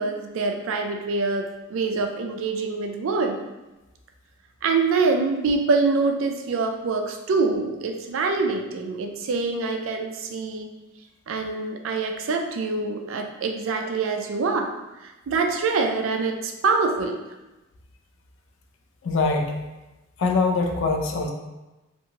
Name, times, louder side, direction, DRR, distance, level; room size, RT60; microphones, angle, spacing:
voice 1, 0.0-3.4 4.6-10.7 11.3-14.7 15.0-17.2, right 4 dB, 65° right, 4 dB, 0.3 m, -25 dB
voice 2, 19.0-19.6 20.2-21.3, left 3 dB, 60° left, 2 dB, 0.4 m, -23 dB
2.8 x 2.5 x 2.7 m, 1.0 s
head